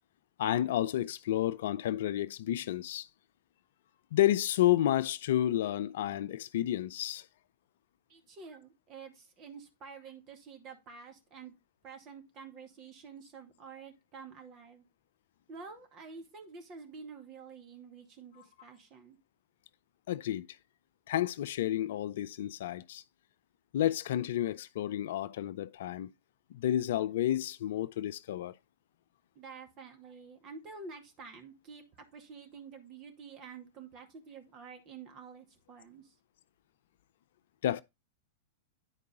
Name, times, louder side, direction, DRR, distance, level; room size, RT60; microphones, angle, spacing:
voice 1, 0.4-3.1 4.1-7.3 20.1-20.5 21.1-23.0 23.7-26.1 26.5-28.5 37.6-37.8, left 12 dB, 65° left, 0.4 m, -30 dB
voice 2, 8.1-11.5 11.8-14.8 15.5-19.2 29.4-36.2, right 5 dB, 40° right, 2.1 m, -49 dB
10.0 x 4.7 x 3.6 m
figure-of-eight pair, 100°, 0 cm